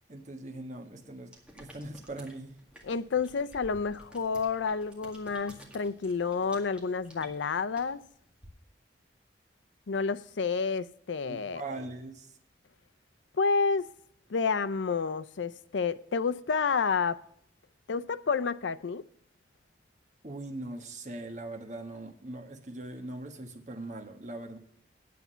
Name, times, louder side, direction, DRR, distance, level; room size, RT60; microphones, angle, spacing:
voice 1, 0.1-2.6 11.3-12.3 20.2-24.6, right 2 dB, 40° right, 1.3 m, -41 dB
sound 1, 1.3-8.5, right 1 dB, 5° right, 1.9 m, -53 dB
voice 2, 2.8-8.0 9.9-11.6 13.4-13.9 14.3-17.2 17.9-19.0, left 5 dB, 85° left, 0.5 m, -29 dB
9.5 x 8.2 x 5.5 m
head